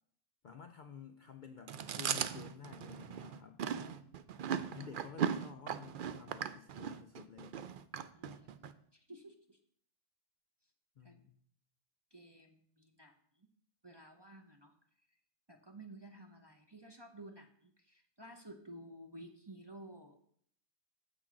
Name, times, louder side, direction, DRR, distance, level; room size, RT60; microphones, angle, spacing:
voice 1, 0.4-3.6 4.7-7.6 11.0-11.3, left 6 dB, 55° left, 6 dB, 0.5 m, -51 dB
Chewing mastication, 1.7-8.7, right 8 dB, 60° right, 0.5 m, -38 dB
voice 2, 3.6-4.3 4.7-4.9 8.1-9.6 11.0-11.2 12.1-13.1 13.4-13.5 13.8-14.7 15.5-20.2, right 1 dB, 25° right, 3 dB, 0.7 m, -54 dB
7.6 x 6.2 x 5.9 m, 0.62 s
omnidirectional pair, 1.3 m